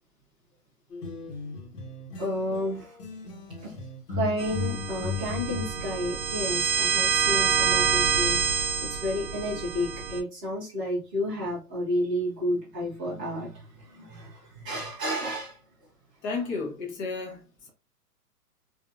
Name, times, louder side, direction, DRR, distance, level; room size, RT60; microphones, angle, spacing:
sound 1, 0.9-2.7 3.0-5.8, left 5 dB, 75° left, 1.2 m, -36 dB
voice 1, 2.2-3.0 3.6-3.8 4.1-15.6, equal, 5° right, 0.4 m, -31 dB
sound 2, 4.4-10.2, right 6 dB, 55° right, 0.8 m, -27 dB
voice 2, 16.2-17.7, left 4 dB, 25° left, 1.0 m, -33 dB
3.8 x 2.7 x 2.4 m
hypercardioid pair, 125°, 47 cm